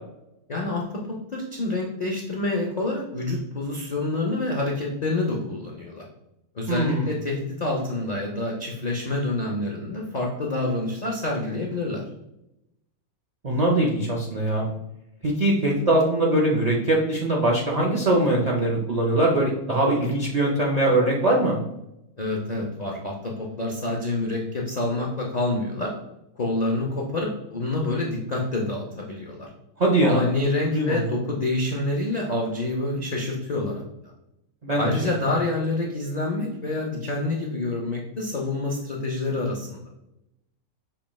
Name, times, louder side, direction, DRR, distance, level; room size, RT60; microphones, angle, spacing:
voice 1, 0.5-6.0 6.5-12.0 22.2-25.9 26.4-29.5 30.0-33.8 34.8-39.8, left 2 dB, 75° left, -2 dB, 0.4 m, -27 dB
voice 2, 6.7-7.1 13.4-14.7 15.2-21.6 29.8-30.3 30.5-31.0 34.6-34.9, right 1 dB, 75° right, -2 dB, 0.3 m, -22 dB
5.5 x 3.0 x 2.2 m, 0.87 s
omnidirectional pair, 1.6 m